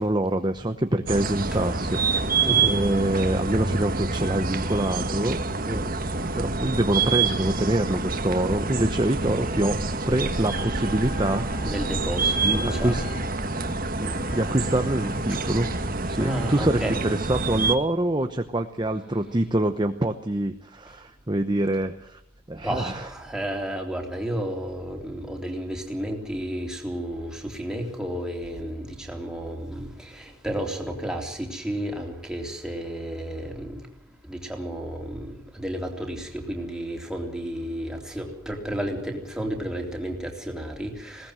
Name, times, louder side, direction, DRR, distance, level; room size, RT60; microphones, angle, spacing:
voice 1, 0.0-2.3 2.6-5.4 5.7-11.5 12.4-13.0 14.0-15.7 16.1-22.2 22.5-23.1, right 1 dB, 20° right, 7 dB, 0.9 m, -25 dB
sound 1, 1.1-17.7, right 3 dB, 40° right, 1.7 m, -27 dB
voice 2, 2.4-2.8 11.6-13.0 16.1-17.0 22.6-33.9 34.2-41.3, right 1 dB, 5° right, 1 dB, 3.5 m, -32 dB
Wind instrument woodwind instrument, 10.4-16.6, left 1 dB, 55° left, 3.8 m, -44 dB
20.5 x 18.0 x 7.7 m, 0.74 s
head